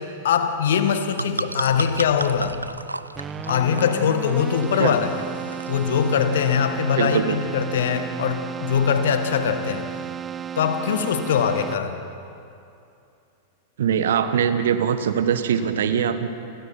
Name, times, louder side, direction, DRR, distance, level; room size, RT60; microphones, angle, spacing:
voice 1, 0.0-2.6 3.5-5.1 5.7-9.9 10.6-12.0, left 7 dB, 60° left, 8 dB, 1.9 m, -22 dB
sound 1, 0.8-6.3, right 2 dB, 85° right, 0.5 m, -34 dB
Keyboard (musical), 3.1-12.1, right 8 dB, 20° right, 0.5 m, -33 dB
voice 2, 6.9-7.4 13.8-16.3, right 8 dB, 60° right, 10 dB, 1.5 m, -22 dB
30.0 x 28.0 x 4.5 m, 2.6 s
figure-of-eight pair, 95°, 0 cm